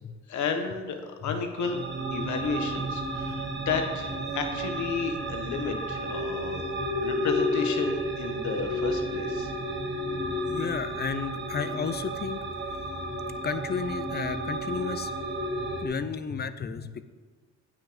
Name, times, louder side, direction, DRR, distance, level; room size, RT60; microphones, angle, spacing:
voice 1, 0.3-1.8 2.1-6.6 7.0-9.5, left 5 dB, 70° left, 6 dB, 1.2 m, -32 dB
sound 1, 1.5-15.9, equal, 40° right, 1.2 m, -32 dB
voice 2, 10.5-12.4 13.4-15.1 15.6-17.0, left 6 dB, 35° left, 11 dB, 0.6 m, -33 dB
8.3 x 6.2 x 5.1 m, 1.4 s
cardioid pair, 90°, 30 cm